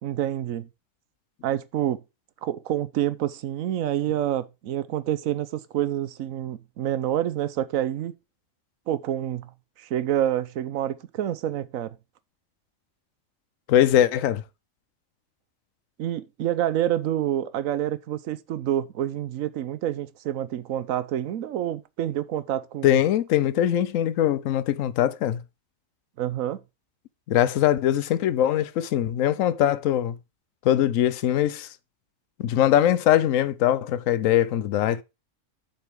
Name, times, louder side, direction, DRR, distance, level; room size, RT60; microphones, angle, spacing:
voice 1, 0.0-0.7 1.4-2.0 2.4-8.2 8.9-9.5 9.8-12.0 16.0-23.0 26.2-26.6, right 11 dB, 85° right, 1.1 m, -27 dB
voice 2, 13.7-14.4 22.8-25.4 27.3-30.2 30.6-31.7 32.4-35.0, left 11 dB, 80° left, 1.0 m, -22 dB
7.9 x 7.0 x 3.6 m
omnidirectional pair, 1.4 m